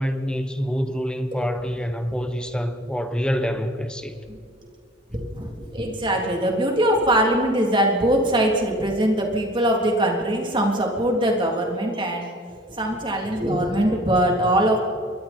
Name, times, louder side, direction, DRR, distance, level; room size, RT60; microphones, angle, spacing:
voice 1, 0.0-4.1, equal, 5° left, 1.1 m, -26 dB
voice 2, 5.1-12.3 12.7-14.8, right 1 dB, 25° right, 3.4 m, -22 dB
27.5 x 23.0 x 4.5 m
head